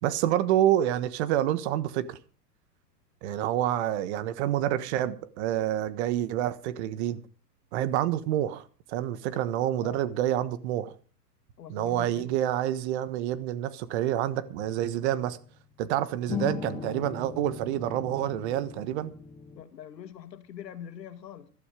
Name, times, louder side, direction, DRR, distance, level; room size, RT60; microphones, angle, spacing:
voice 1, 0.0-2.2 3.2-7.2 7.7-10.9 11.7-15.4 15.8-19.1, right 12 dB, 40° right, 1.4 m, -28 dB
voice 2, 9.7-10.0 11.6-12.4 19.5-21.5, left 9 dB, 90° left, 2.1 m, -44 dB
sound 1, 14.5-15.5 16.3-19.6, left 7 dB, 10° left, 0.6 m, -39 dB
14.0 x 12.5 x 5.0 m
hypercardioid pair, 150°, 49 cm